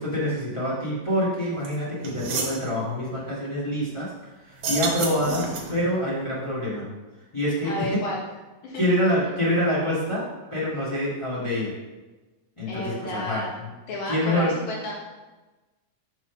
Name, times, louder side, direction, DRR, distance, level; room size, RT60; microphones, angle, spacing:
voice 1, 0.0-4.1 4.5-6.8 7.3-8.0 8.8-10.2 10.5-11.7 12.6-13.7 14.1-14.5, equal, 40° left, -8 dB, 0.4 m, -26 dB
sound 1, 1.6-1.7 2.0-2.6 4.5-5.9, right 4 dB, 65° right, 1.7 m, -29 dB
voice 2, 7.6-8.2 8.6-8.8 9.2-9.3 12.7-13.5 13.9-15.1, left 1 dB, 85° left, -4 dB, 3.2 m, -32 dB
6.7 x 3.7 x 5.8 m, 1.2 s
omnidirectional pair, 3.8 m